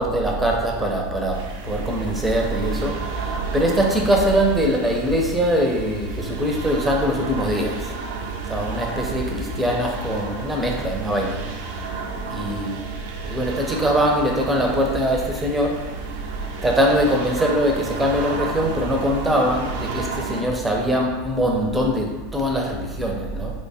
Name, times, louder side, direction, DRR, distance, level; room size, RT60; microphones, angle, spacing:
voice 1, 0.0-7.9 8.5-11.5 12.3-12.8 13.3-15.8 16.6-23.5, equal, 10° right, 0 dB, 0.5 m, -22 dB
sound 1, 1.3-20.4, right 4 dB, 65° right, 0.4 m, -33 dB
3.1 x 2.2 x 2.8 m, 1.2 s
hypercardioid pair, 90°, 0 cm